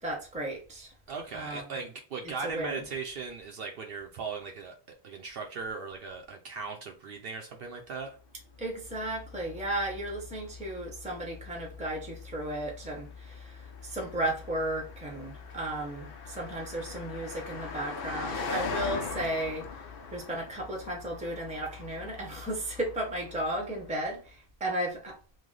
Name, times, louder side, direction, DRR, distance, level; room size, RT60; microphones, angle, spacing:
voice 1, 0.0-0.9 1.3-1.6 2.4-2.8 8.6-19.7 20.1-25.2, right 1 dB, 10° right, 0.7 m, -34 dB
voice 2, 1.1-8.2, right 4 dB, 70° right, 0.8 m, -38 dB
Car passing by, 8.4-24.1, left 5 dB, 65° left, 0.8 m, -41 dB
3.2 x 2.2 x 3.7 m
omnidirectional pair, 1.0 m